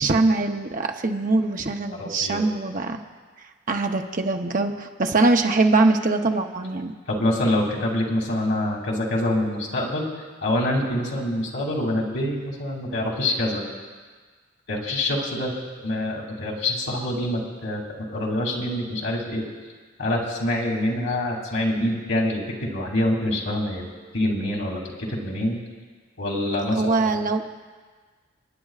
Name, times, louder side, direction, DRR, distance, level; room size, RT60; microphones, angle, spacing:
voice 1, 0.0-3.0 3.7-6.9 26.7-27.4, right 3 dB, 40° right, 4 dB, 0.8 m, -22 dB
voice 2, 1.9-2.4 7.1-10.1 10.4-13.6 14.7-15.5 15.8-17.8 18.1-19.4 20.0-23.8 24.1-24.8 25.1-25.6 26.2-27.2, left 1 dB, 80° left, -2 dB, 2.7 m, -25 dB
30.0 x 10.0 x 2.4 m, 1.5 s
head